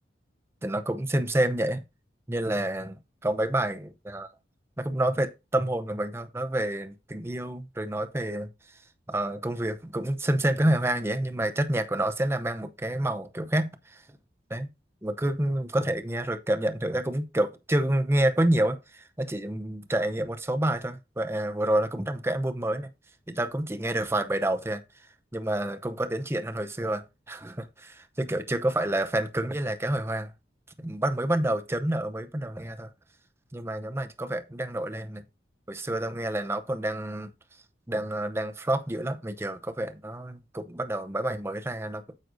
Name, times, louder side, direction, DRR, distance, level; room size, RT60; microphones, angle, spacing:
voice 1, 0.6-1.8 2.3-3.0 3.2-4.3 4.8-8.5 9.1-14.0 14.5-14.7 15.0-22.9 23.3-24.8 25.3-30.3 30.8-32.9 33.5-35.2 35.7-37.3 37.9-42.0, right 1 dB, 15° right, 0.7 m, -28 dB
9.4 x 7.7 x 2.6 m
head